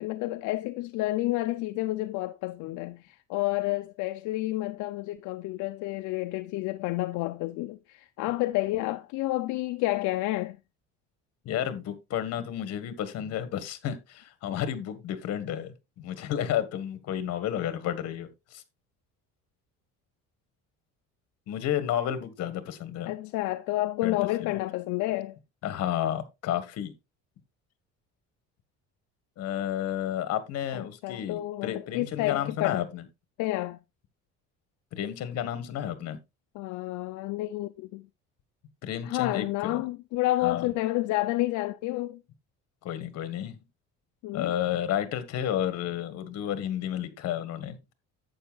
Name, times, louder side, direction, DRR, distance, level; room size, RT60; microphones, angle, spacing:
voice 1, 0.0-10.6 23.1-25.4 30.7-32.8 33.4-33.8 36.6-38.0 39.1-42.2 44.2-44.5, left 18 dB, 75° left, 0.5 m, -30 dB
voice 2, 11.4-18.6 21.5-23.1 24.0-24.6 25.6-26.9 29.4-33.0 34.9-36.2 38.8-39.8 40.4-40.7 42.8-43.6 44.3-47.8, left 10 dB, 55° left, 1.5 m, -31 dB
11.5 x 8.1 x 2.3 m
cardioid pair, 155°, 30 cm